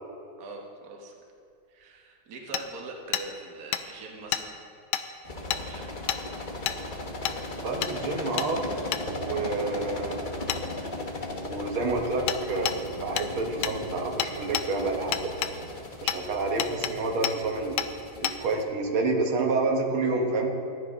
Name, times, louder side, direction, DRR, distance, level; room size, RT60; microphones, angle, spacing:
voice 1, 0.4-1.1 1.7-4.6 5.4-5.9, right 3 dB, 50° right, 0 dB, 1.7 m, -42 dB
Hammer, 2.5-2.6 3.1-3.3 3.7-3.8 4.3-4.4 4.9-5.1 5.5-5.6 6.1-6.2 6.7-6.8 7.3-7.4 7.8-7.9 8.4-8.5 8.9-9.0 10.5-10.6 12.3-12.4 12.7-12.8 13.2-13.3 13.6-13.8 14.2-14.7 15.1-15.5 16.1-16.2 16.6-16.9 17.2-17.4 17.8-17.9 18.2-18.4, left 11 dB, 80° left, 1.4 m, -28 dB
sound 1, 5.2-18.6, left 2 dB, 35° left, 0.9 m, -37 dB
voice 2, 7.6-8.7 9.0-10.2 11.3-15.2 16.0-17.8 18.2-20.5, right 3 dB, 80° right, 1 dB, 2.1 m, -29 dB
14.5 x 12.5 x 3.7 m, 2.5 s
omnidirectional pair, 2.3 m